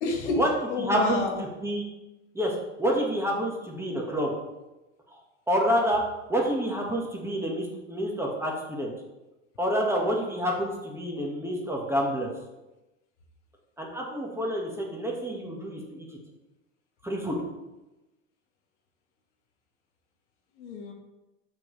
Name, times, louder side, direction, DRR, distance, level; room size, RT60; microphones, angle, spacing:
voice 1, 0.0-1.4 20.6-20.9, left 3 dB, 75° left, 2 dB, 1.4 m, -29 dB
voice 2, 0.8-1.2 1.6-1.8 2.3-4.3 5.1-5.2 5.5-6.0 6.3-8.9 9.6-12.3 13.8-16.1 17.0-17.4, equal, 5° right, -1 dB, 1.7 m, -28 dB
6.8 x 6.1 x 3.3 m, 1.0 s
hypercardioid pair, 90°, 36 cm